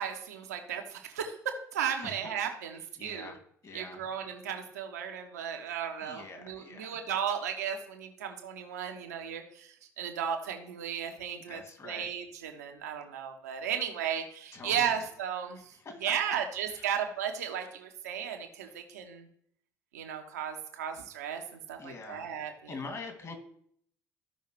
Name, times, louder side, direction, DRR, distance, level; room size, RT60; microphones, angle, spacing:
voice 1, 0.0-1.4 1.7-3.3 3.7-15.7 16.0-19.3 19.9-21.4 21.7-22.7, right 8 dB, 75° right, 4 dB, 1.2 m, -35 dB
voice 2, 2.8-3.4 3.6-4.0 6.0-7.0 11.5-12.1 14.5-15.1 15.7-16.0 16.7-16.9 18.6-18.8 21.8-22.3 22.7-23.3, left 3 dB, 35° left, 3 dB, 2.5 m, -44 dB
15.0 x 5.6 x 3.2 m, 0.66 s
figure-of-eight pair, 55°, 9 cm